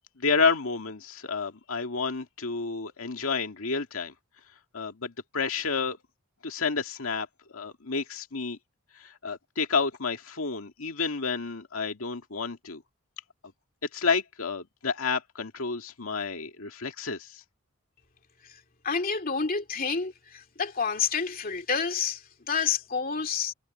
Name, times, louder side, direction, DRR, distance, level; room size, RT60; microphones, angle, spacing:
voice 1, 0.2-4.1 4.7-6.0 6.4-7.3 7.5-8.6 9.0-12.8 13.9-17.4, left 4 dB, 80° left, 2.0 m, -30 dB
voice 2, 18.8-23.5, left 6 dB, 45° left, 2.5 m, -29 dB
head